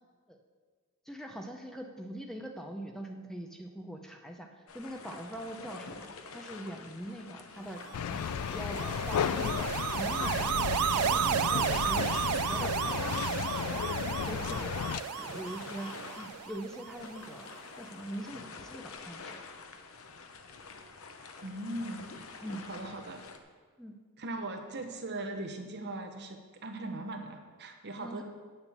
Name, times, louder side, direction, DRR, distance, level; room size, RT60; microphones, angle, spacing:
voice 1, 1.1-4.5 4.7-6.1 6.3-7.8 8.1-9.7 10.0-10.5 10.9-12.0 12.5-13.9 14.3-17.5 17.8-19.4 22.4-22.6 23.8-23.9 28.0-28.2, right 1 dB, ahead, 2 dB, 0.6 m, -42 dB
sound 1, 4.7-23.4, left 4 dB, 65° left, 0.8 m, -48 dB
sound 2, 7.9-15.0, left 8 dB, 90° left, 0.3 m, -33 dB
sound 3, 8.0-17.2, right 10 dB, 85° right, 0.3 m, -33 dB
voice 2, 21.4-22.4 22.7-23.2 24.2-28.2, right 2 dB, 50° right, 4 dB, 1.0 m, -39 dB
8.7 x 7.1 x 6.8 m, 1.5 s
head